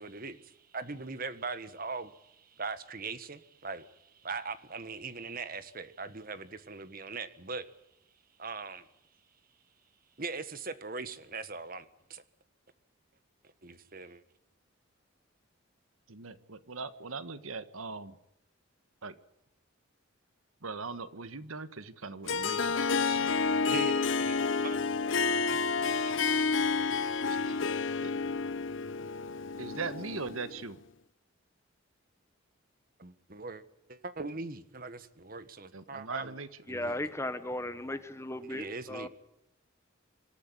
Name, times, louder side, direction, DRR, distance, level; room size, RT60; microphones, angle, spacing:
voice 1, 0.0-7.7 8.4-8.9 10.2-12.2 13.6-14.2 23.7-24.8 25.9-26.5 33.0-33.6 33.9-36.3 36.7-37.0 38.5-39.1, right 4 dB, 45° right, 1.6 m, -41 dB
voice 2, 16.1-18.2 19.0-19.2 20.6-23.4 27.3-27.6 28.0-28.1 29.6-30.8 35.7-36.5, right 4 dB, 90° right, 1.5 m, -40 dB
Harp, 22.3-30.7, left 4 dB, 65° left, 0.8 m, -30 dB
voice 3, 36.7-39.1, left 1 dB, 15° left, 1.2 m, -36 dB
26.0 x 13.5 x 9.8 m
head